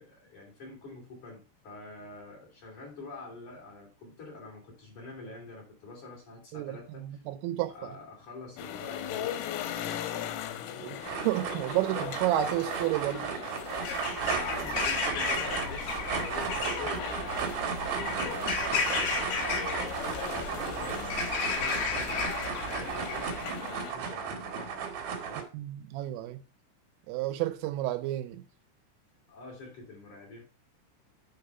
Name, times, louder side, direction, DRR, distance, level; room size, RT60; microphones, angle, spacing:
voice 1, 0.0-7.2 7.7-10.0 14.3-19.5 20.1-25.4 29.3-30.4, left 3 dB, 40° left, 4.0 m, -46 dB
voice 2, 6.5-7.7 10.8-11.0 11.2-13.3 25.5-26.4 27.1-28.4, right 15 dB, 85° right, 3.1 m, -31 dB
sound 1, 8.6-23.9, left 10 dB, 90° left, 3.5 m, -40 dB
sound 2, 11.0-25.4, right 7 dB, 65° right, 2.6 m, -35 dB
Bird vocalization bird call bird song / Crow, 13.7-23.6, left 5 dB, 65° left, 2.7 m, -33 dB
9.4 x 3.9 x 5.4 m
omnidirectional pair, 5.9 m